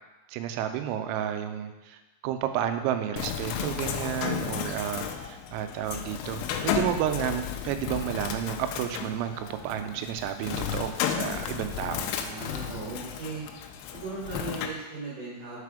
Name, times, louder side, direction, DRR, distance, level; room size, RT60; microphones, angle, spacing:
voice 1, 0.3-2.0 2.2-12.1, right 10 dB, 90° right, 7 dB, 3.2 m, -31 dB
Bird, 3.2-14.7, left 8 dB, 85° left, 3.0 m, -33 dB
voice 2, 12.2-13.5 13.9-15.6, right 3 dB, 65° right, -7 dB, 2.0 m, -37 dB
6.6 x 5.0 x 4.9 m, 1.1 s
omnidirectional pair, 5.9 m